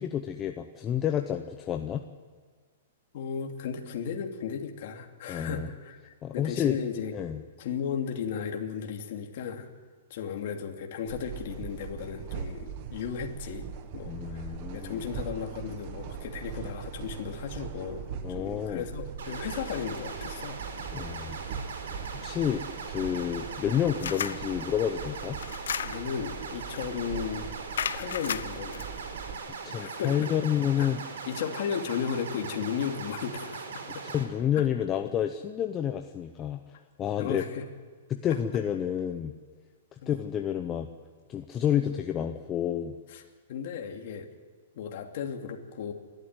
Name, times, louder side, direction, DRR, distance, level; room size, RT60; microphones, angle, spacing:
voice 1, 0.0-2.0 5.3-5.7 6.2-6.8 7.1-7.4 14.1-15.0 18.2-18.9 20.9-21.4 22.2-25.4 29.6-31.0 34.0-36.6 37.0-37.4 38.1-39.3 40.1-40.9 41.3-43.0, left 9 dB, 15° left, 5 dB, 0.8 m, -29 dB
voice 2, 3.1-7.2 7.6-9.7 10.1-14.5 14.7-20.6 25.8-27.5 27.9-29.4 29.7-30.3 30.8-30.9 31.3-34.0 37.2-37.6 40.0-40.1 43.1-43.2 43.5-44.3 44.8-45.9, left 7 dB, 45° left, 3 dB, 2.7 m, -35 dB
sound 1, 11.1-29.3, right 8 dB, 30° right, 1.3 m, -41 dB
sound 2, 19.2-34.2, right 5 dB, 70° right, 4.2 m, -40 dB
sound 3, 24.0-24.4 25.4-26.2 26.8-27.0 27.8-28.8, left 8 dB, 90° left, 0.8 m, -33 dB
30.0 x 13.0 x 9.6 m, 1.5 s
hypercardioid pair, 175°, 0 cm